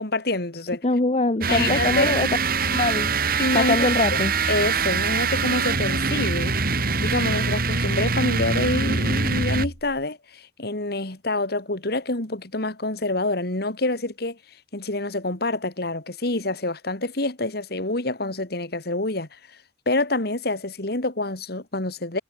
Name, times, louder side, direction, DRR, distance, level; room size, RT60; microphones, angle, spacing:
voice 1, 0.0-0.8 1.5-2.1 3.4-4.2 4.5-14.4 14.7-19.3 19.9-22.2, left 2 dB, 60° left, 2.7 m, -27 dB
voice 2, 0.8-2.3 2.6-4.3, left 2 dB, 35° left, 1.0 m, -23 dB
sound 1, 1.4-9.9, right 4 dB, 55° right, 4.7 m, -23 dB
head